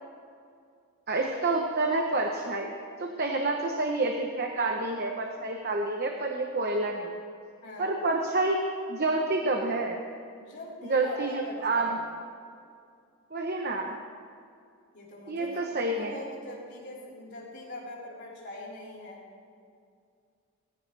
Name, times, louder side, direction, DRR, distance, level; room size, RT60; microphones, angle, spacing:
voice 1, 1.1-2.7 3.0-7.1 7.8-8.6 8.9-10.0 10.8-12.0 13.3-13.9 15.3-16.1, right 2 dB, 45° right, 2 dB, 1.0 m, -28 dB
voice 2, 7.6-7.9 10.3-11.2 11.4-12.0 14.9-19.2, left 1 dB, 50° left, -6 dB, 4.2 m, -42 dB
20.5 x 15.5 x 3.4 m, 2.3 s
head